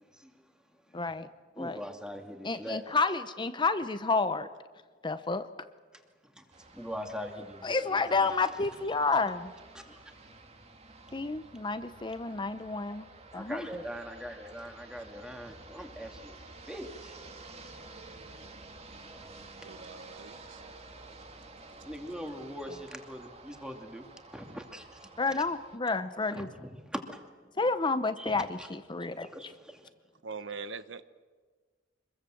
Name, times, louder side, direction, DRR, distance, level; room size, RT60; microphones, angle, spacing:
voice 1, 0.9-1.3 1.6-1.8 2.4-4.5 5.0-5.5 7.6-9.5 11.1-13.8 25.2-26.5 27.6-29.3, left 3 dB, 25° left, 11 dB, 0.8 m, -30 dB
voice 2, 1.6-2.8 6.4-8.3 9.7-10.0 13.3-16.4 16.7-17.2 21.8-24.1 24.3-25.1 26.3-27.2 28.2-28.7 29.0-29.8, equal, 5° right, 4 dB, 2.5 m, -42 dB
sound 1, 6.5-25.8, right 3 dB, 35° right, 2.3 m, -51 dB
voice 3, 19.6-20.6 30.2-31.0, right 4 dB, 85° right, 13 dB, 1.1 m, -42 dB
25.5 x 21.5 x 7.8 m, 1.4 s
head